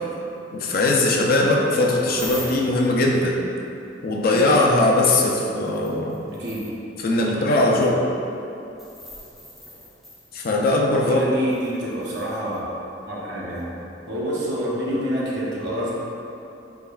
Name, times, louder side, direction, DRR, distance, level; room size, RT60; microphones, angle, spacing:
voice 1, 0.5-3.4 4.0-6.2 7.0-8.0 10.3-11.2, left 2 dB, 55° left, -1 dB, 0.4 m, -20 dB
sound 1, 2.2-2.8 5.2-5.3 5.7-6.8 8.8-10.7 11.5-12.6 13.6-13.7, equal, ahead, 0.7 m, -41 dB
voice 2, 6.4-6.7 7.2-7.6 11.0-12.7 13.1-13.7 14.1-15.9, equal, 65° right, -5 dB, 0.8 m, -27 dB
3.9 x 3.4 x 2.3 m, 2.9 s
head